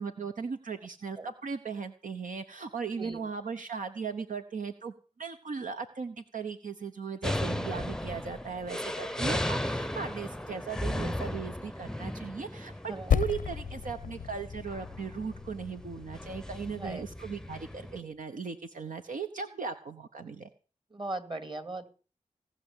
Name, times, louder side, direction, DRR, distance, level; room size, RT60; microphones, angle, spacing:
voice 1, 0.0-20.5, right 5 dB, 75° right, 7 dB, 1.0 m, -38 dB
sound 1, 7.2-18.0, left 1 dB, 5° left, 0.7 m, -36 dB
voice 2, 12.9-13.2 16.7-17.0 20.9-21.9, right 2 dB, 35° right, 10 dB, 2.7 m, -38 dB
Percussion, 13.1-17.9, left 8 dB, 90° left, 0.6 m, -34 dB
17.5 x 6.1 x 9.8 m, 0.37 s
cardioid pair, 45°, 14 cm